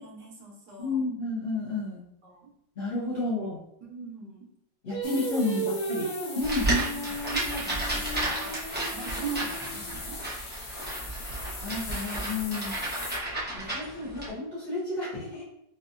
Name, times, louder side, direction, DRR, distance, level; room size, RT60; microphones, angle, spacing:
voice 1, 0.0-1.0 2.2-2.5 3.8-4.5 5.1-5.8 6.8-8.6 8.9-10.2, right 5 dB, 70° right, -2 dB, 1.4 m, -40 dB
voice 2, 0.8-2.0 2.8-3.6 4.8-6.0 6.3-6.7 11.6-12.8 13.5-15.5, left 3 dB, 45° left, -9 dB, 0.9 m, -31 dB
Singing, 4.9-10.2, right 2 dB, 60° left, 1.2 m, -36 dB
sound 1, 5.0-13.2, left 3 dB, 90° left, 0.5 m, -41 dB
sound 2, 6.4-14.3, right 2 dB, 15° right, 0.3 m, -32 dB
4.4 x 2.4 x 2.5 m, 0.74 s
omnidirectional pair, 1.9 m